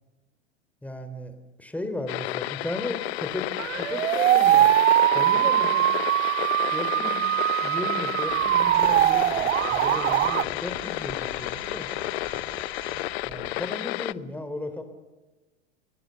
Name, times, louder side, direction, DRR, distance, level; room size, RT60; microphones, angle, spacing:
voice 1, 0.8-1.3 1.6-4.7 5.1-5.9 6.7-11.9 13.2-14.8, left 2 dB, 5° left, 8 dB, 3.7 m, -35 dB
sound 1, 2.1-14.1, left 19 dB, 65° left, 0.7 m, -32 dB
sound 2, 3.6-10.4, right 13 dB, 85° right, 0.7 m, -22 dB
sound 3, 8.2-13.5, right 5 dB, 45° right, 6.6 m, -45 dB
29.5 x 17.0 x 7.0 m, 1.2 s
hypercardioid pair, 100°, 35 cm